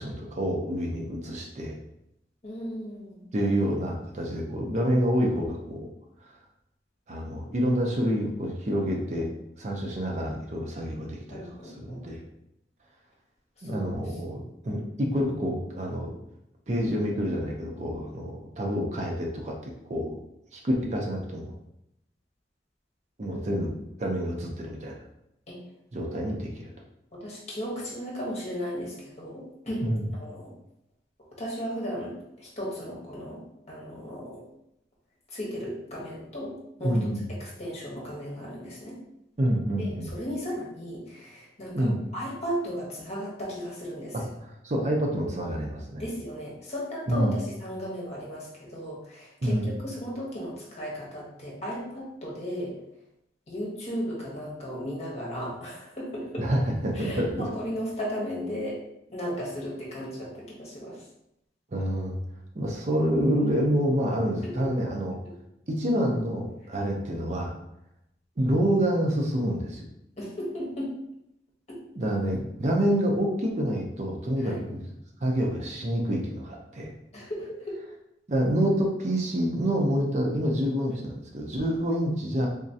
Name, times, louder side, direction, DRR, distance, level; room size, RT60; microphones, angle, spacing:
voice 1, 0.0-1.7 3.3-5.9 6.2-6.4 7.1-9.3 9.6-12.2 13.6-16.1 16.7-20.1 20.5-21.5 23.2-23.7 24.0-25.0 25.9-26.7 29.8-30.1 36.8-37.2 39.4-40.1 41.7-42.0 44.1-46.1 47.1-47.4 49.4-49.7 56.4-57.3 61.7-62.2 62.5-65.2 65.7-67.5 68.4-69.8 72.0-74.9 75.2-76.9 78.3-82.5, equal, 40° right, 0 dB, 0.5 m, -27 dB
voice 2, 2.4-3.2 11.3-12.0 13.6-13.9 23.3-23.5 25.5-25.6 27.1-29.8 30.2-30.5 31.3-33.4 33.7-34.5 35.3-39.0 39.8-44.1 46.0-52.8 53.5-56.5 56.9-58.8 59.1-61.0 64.4-64.7 70.2-70.9 71.7-71.8 74.4-74.6 77.1-77.8, equal, 40° left, -4 dB, 1.2 m, -35 dB
3.6 x 3.1 x 2.7 m, 0.82 s
head